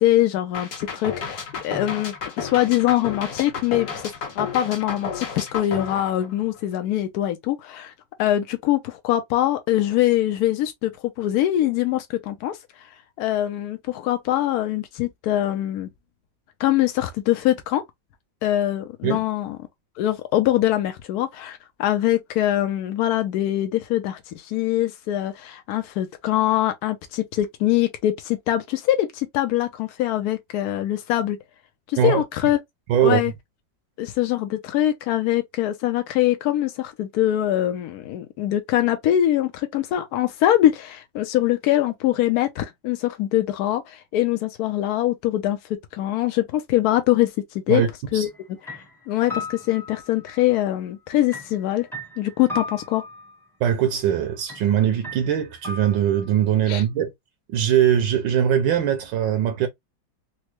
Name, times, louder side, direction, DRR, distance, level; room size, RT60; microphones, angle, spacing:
voice 1, 0.0-4.1 4.4-7.9 8.2-10.9 11.2-12.6 13.2-15.9 16.6-17.8 18.4-19.6 20.0-31.4 31.9-32.6 33.0-33.3 34.0-45.6 45.9-47.3 47.7-47.8 48.1-51.9 52.2-53.0 56.7-56.8, left 13 dB, 80° left, 0.8 m, -23 dB
sound 1, 0.5-6.7, left 5 dB, 55° left, 1.5 m, -32 dB
voice 2, 32.9-33.2 47.7-47.9 48.1-48.3 53.6-57.1 57.5-59.7, right 9 dB, 75° right, 1.3 m, -21 dB
sound 2, 48.2-48.4 48.7-50.5 51.3-53.4 54.5-54.7 55.0-56.4, left 2 dB, 5° left, 0.4 m, -36 dB
4.3 x 2.0 x 2.9 m
omnidirectional pair, 2.1 m